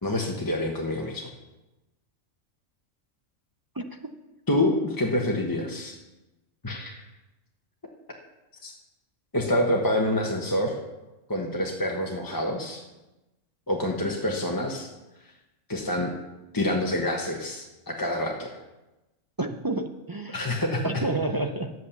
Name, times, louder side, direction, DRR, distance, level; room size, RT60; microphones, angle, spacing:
voice 1, 0.0-1.3 4.5-6.0 6.6-7.0 8.6-8.7 9.3-10.7 11.3-12.8 13.7-14.9 15.7-16.1 16.5-18.6 20.3-20.9, left 1 dB, 20° left, 0 dB, 0.9 m, -27 dB
voice 2, 19.4-20.4 20.8-21.7, right 2 dB, 25° right, 5 dB, 0.4 m, -29 dB
10.5 x 8.4 x 7.0 m, 1.1 s
omnidirectional pair, 1.3 m